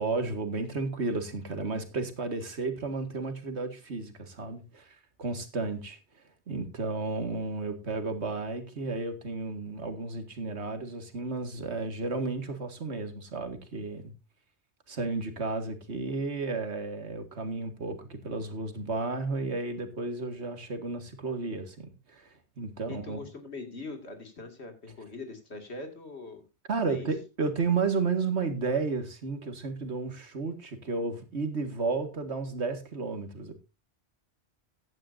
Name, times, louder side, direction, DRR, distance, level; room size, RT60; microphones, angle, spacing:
voice 1, 0.0-6.0 6.5-14.1 14.9-22.3 22.6-23.2 26.7-33.5, right 4 dB, 80° right, 8 dB, 2.1 m, -32 dB
voice 2, 22.9-26.4 26.8-27.1, left 3 dB, 75° left, 6 dB, 2.6 m, -42 dB
15.5 x 10.5 x 2.6 m, 0.28 s
omnidirectional pair, 1.1 m